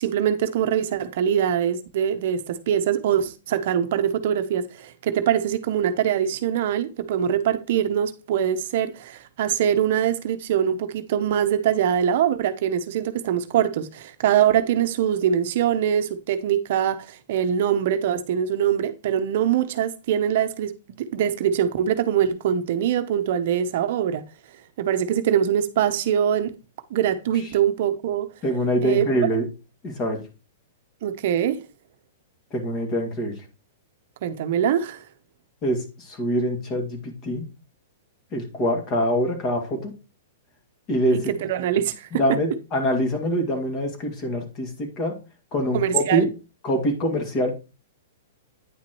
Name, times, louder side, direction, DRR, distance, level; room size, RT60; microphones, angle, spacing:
voice 1, 0.0-24.2 24.8-26.5 26.9-28.3 28.8-29.1 31.0-31.7 34.2-35.0 41.3-42.2 45.7-46.3, right 9 dB, 55° right, 0.7 m, -23 dB
voice 2, 28.4-29.5 29.8-30.2 32.5-33.3 35.6-37.4 38.3-39.9 40.9-41.2 42.1-45.2 45.5-46.3 46.6-47.5, equal, 30° left, 2.1 m, -24 dB
9.4 x 5.9 x 3.0 m
hypercardioid pair, 155°, 0 cm